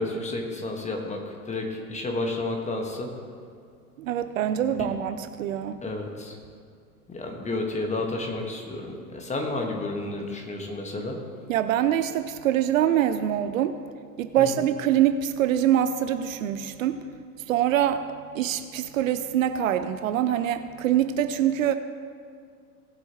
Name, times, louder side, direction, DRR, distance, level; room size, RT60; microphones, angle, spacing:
voice 1, 0.0-3.1 4.4-4.5 4.8-4.9 5.8-6.4 7.1-11.2 14.4-14.6, left 2 dB, 15° left, 1.6 m, -31 dB
voice 2, 4.0-5.8 11.5-13.8 14.2-17.1 17.5-21.7, right 10 dB, 60° right, 0.6 m, -24 dB
18.5 x 7.9 x 3.1 m
figure-of-eight pair, 90°, 46 cm